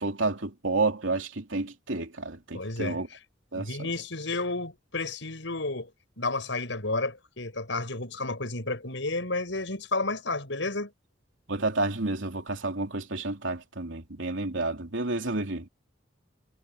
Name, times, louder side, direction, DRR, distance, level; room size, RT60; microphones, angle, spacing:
voice 1, 0.0-3.1 3.5-3.7 11.5-15.7, right 3 dB, 90° right, 3.0 m, -30 dB
voice 2, 2.5-3.2 3.6-5.9 6.2-10.9, left 2 dB, 75° left, 6.5 m, -31 dB
head